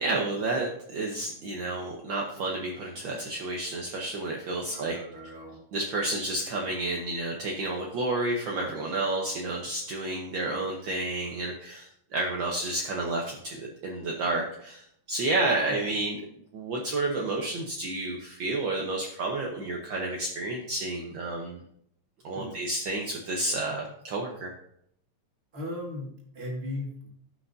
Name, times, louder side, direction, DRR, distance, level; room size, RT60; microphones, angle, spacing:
voice 1, 0.0-5.0 5.7-16.2 16.5-21.6 22.2-24.5, right 2 dB, 65° right, -1 dB, 1.2 m, -30 dB
voice 2, 4.6-5.6 15.6-16.0 22.3-22.6 25.5-27.1, left 1 dB, 25° right, -1 dB, 1.8 m, -38 dB
15.5 x 5.7 x 2.7 m, 0.69 s
omnidirectional pair, 3.3 m